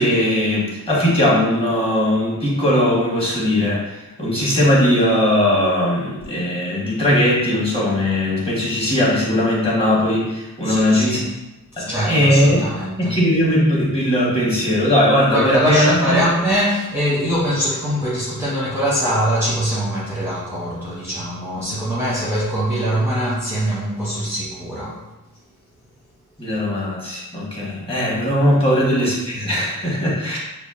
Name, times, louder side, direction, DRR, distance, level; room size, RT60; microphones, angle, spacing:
voice 1, 0.0-11.3 11.8-12.6 13.0-16.2 26.4-30.4, left 1 dB, 15° left, -6 dB, 1.1 m, -19 dB
voice 2, 10.6-11.3 11.7-13.2 15.3-25.0 28.7-28.8, equal, 5° right, -8 dB, 0.6 m, -22 dB
6.8 x 2.3 x 2.4 m, 1.0 s
wide cardioid pair, 175°, 36 cm